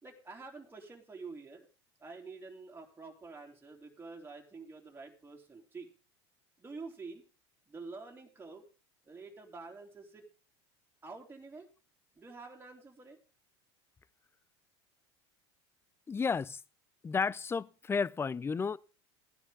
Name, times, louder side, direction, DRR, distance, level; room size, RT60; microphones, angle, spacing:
voice 1, 0.0-1.7 2.0-5.9 6.6-7.2 7.7-8.6 9.0-10.3 11.0-11.7 12.1-13.2, right 4 dB, 15° right, 3.1 m, -48 dB
voice 2, 16.1-16.6 17.0-18.8, left 5 dB, 15° left, 0.5 m, -32 dB
15.5 x 10.0 x 3.7 m
hypercardioid pair, 90°, 15 cm